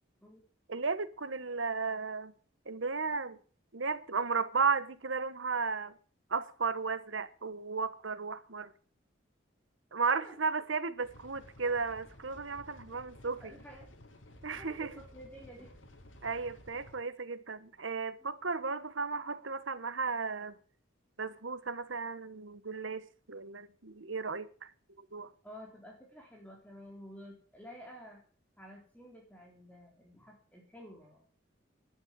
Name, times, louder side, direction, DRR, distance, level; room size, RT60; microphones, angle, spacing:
voice 1, 0.7-2.3 2.7-3.4 3.7-6.0 6.3-8.7 9.9-13.6 14.4-14.9 16.2-20.6 21.2-25.3, right 4 dB, 80° right, 1.2 m, -34 dB
voice 2, 10.1-10.5 13.4-13.9 14.5-15.7 16.3-16.5 18.2-18.4 25.4-28.2 28.6-31.3, equal, 10° left, 3.4 m, -51 dB
sound 1, 11.0-17.0, left 1 dB, 85° left, 2.8 m, -55 dB
12.0 x 10.0 x 8.3 m
head